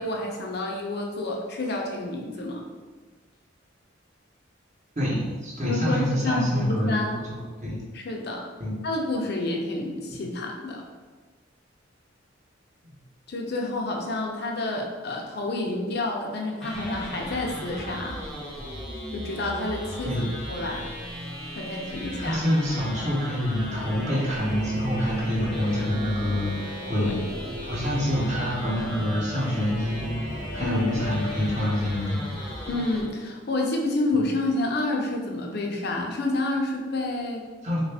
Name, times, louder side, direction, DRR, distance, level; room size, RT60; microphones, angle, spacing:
voice 1, 0.0-2.6 5.6-7.2 7.9-8.5 8.8-10.8 13.3-18.2 19.1-20.9 21.5-22.4 27.0-27.1 30.6-31.0 32.7-37.5, left 2 dB, 55° left, 1 dB, 0.5 m, -29 dB
voice 2, 5.0-7.8 8.6-8.8 10.1-10.2 12.8-12.9 20.0-20.3 22.2-27.1 27.6-32.2 37.6-37.8, left 1 dB, 40° right, -6 dB, 0.9 m, -27 dB
sound 1, 16.6-33.0, equal, 5° left, 0.6 m, -37 dB
sound 2, 23.7-31.4, equal, 80° right, 0.6 m, -37 dB
3.3 x 2.4 x 3.4 m, 1.4 s
head